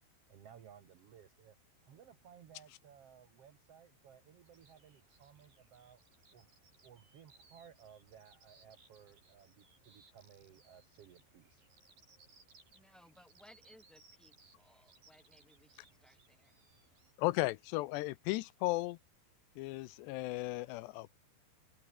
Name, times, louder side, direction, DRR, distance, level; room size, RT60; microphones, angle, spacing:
voice 1, 0.3-1.6 1.9-6.0 6.3-6.5 6.8-11.6, right 8 dB, 70° right, 1.4 m, -59 dB
sound 1, 4.4-17.1, right 4 dB, 55° right, 8.5 m, -66 dB
voice 2, 12.7-16.6, equal, ahead, 5.2 m, -63 dB
voice 3, 17.2-19.0 19.6-21.2, left 19 dB, 85° left, 2.8 m, -35 dB
open air
omnidirectional pair, 4.9 m